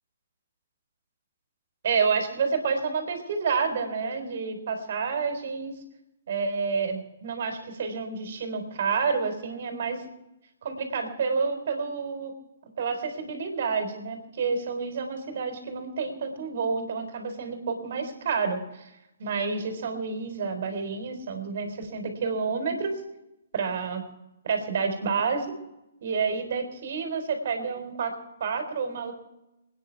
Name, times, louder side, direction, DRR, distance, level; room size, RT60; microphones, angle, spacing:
voice 1, 1.8-5.7 6.3-10.0 10.6-12.3 12.8-18.8 19.2-23.0 23.5-24.0 24.4-25.5 26.0-28.1 28.4-29.1, right 5 dB, 55° right, 6 dB, 3.8 m, -29 dB
27.0 x 10.0 x 4.6 m, 0.91 s
figure-of-eight pair, 125°, 0 cm